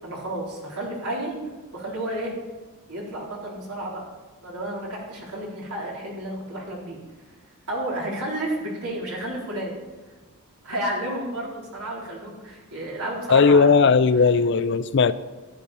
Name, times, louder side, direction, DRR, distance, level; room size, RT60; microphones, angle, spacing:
voice 1, 0.0-1.4 1.7-2.3 2.9-4.0 4.4-7.0 7.7-9.7 10.6-13.9, right 1 dB, 85° right, -4 dB, 4.0 m, -31 dB
voice 2, 13.3-15.1, left 5 dB, 50° left, 14 dB, 0.4 m, -17 dB
14.0 x 10.0 x 4.3 m, 1.3 s
head